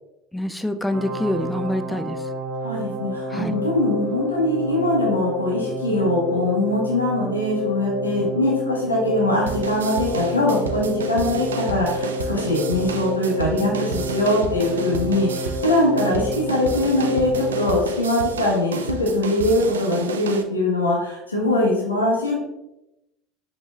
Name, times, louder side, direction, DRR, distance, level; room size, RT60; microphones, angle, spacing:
voice 1, 0.3-2.2 3.3-3.5, left 1 dB, 5° left, 9 dB, 0.4 m, -25 dB
sound 1, 0.9-17.7, left 1 dB, 45° right, 1.0 m, -29 dB
voice 2, 2.6-22.4, left 1 dB, 90° left, -3 dB, 0.9 m, -22 dB
sound 2, 9.5-20.4, right 5 dB, 80° right, 0.3 m, -31 dB
5.2 x 3.1 x 2.3 m, 0.91 s
figure-of-eight pair, 70°, 0 cm